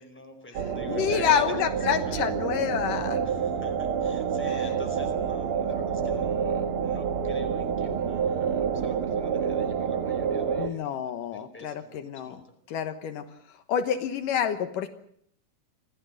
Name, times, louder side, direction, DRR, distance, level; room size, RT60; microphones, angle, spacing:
voice 1, 0.0-1.5 1.9-2.3 3.2-12.5, left 1 dB, 5° left, 4 dB, 4.2 m, -46 dB
sound 1, 0.5-10.7, right 7 dB, 55° right, 1.8 m, -28 dB
voice 2, 0.9-3.2 10.6-12.3 12.7-13.3 13.7-14.9, left 8 dB, 75° left, 9 dB, 2.8 m, -28 dB
26.0 x 16.0 x 7.7 m, 0.68 s
omnidirectional pair, 3.8 m